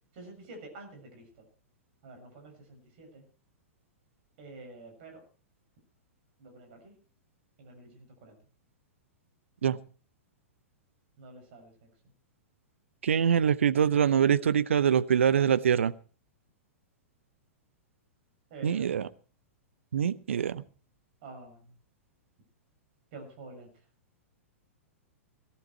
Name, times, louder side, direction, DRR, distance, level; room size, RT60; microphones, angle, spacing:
voice 1, 0.1-1.3 2.0-3.2 4.4-5.2 6.4-6.9 7.6-8.4 11.2-11.7 18.5-19.1 21.2-21.8 23.1-23.7, right 2 dB, 45° right, 4 dB, 6.9 m, -48 dB
voice 2, 13.0-15.9 18.6-19.0 19.9-20.6, right 8 dB, 60° right, 16 dB, 0.8 m, -24 dB
18.0 x 12.5 x 4.5 m, 0.38 s
figure-of-eight pair, 105°, 7 cm